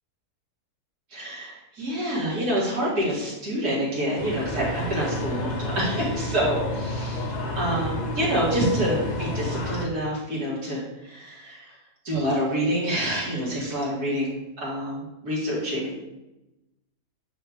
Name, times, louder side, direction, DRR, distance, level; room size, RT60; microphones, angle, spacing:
voice 1, 1.1-7.3 7.6-11.7 12.0-15.9, equal, 70° right, -6 dB, 2.6 m, -27 dB
sound 1, 4.2-9.9, left 1 dB, 35° left, 0.8 m, -30 dB
6.4 x 5.4 x 3.5 m, 0.95 s
omnidirectional pair, 1.6 m